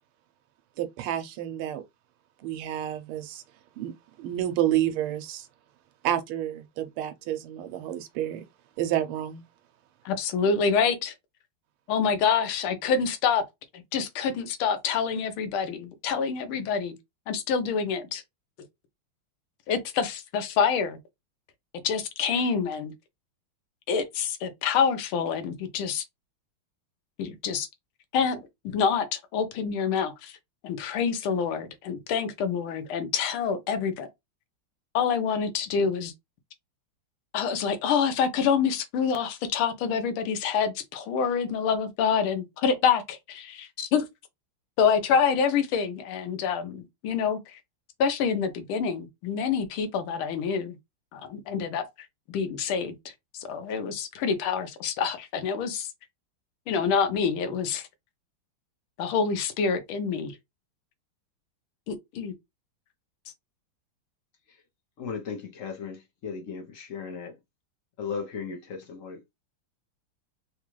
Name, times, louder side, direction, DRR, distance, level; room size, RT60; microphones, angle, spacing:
voice 1, 0.8-1.8 2.4-3.4 3.8-3.9 4.2-5.5 6.0-8.4 8.8-9.4, right 12 dB, 90° right, 1.5 m, -29 dB
voice 2, 10.0-11.1 11.9-13.4 13.9-17.0 17.3-18.2 19.7-21.0 21.8-22.9 23.9-26.0 27.2-27.7 28.1-28.5 28.7-30.4 30.6-34.1 34.9-36.1 37.3-44.0 44.8-47.6 48.0-50.8 51.1-51.8 52.3-52.9 53.3-55.9 56.7-57.9 59.0-60.3 61.9-62.3, left 6 dB, 80° left, 1.6 m, -27 dB
voice 3, 65.0-67.3 68.0-69.2, left 6 dB, 55° left, 1.0 m, -36 dB
4.0 x 2.3 x 3.0 m
omnidirectional pair, 2.3 m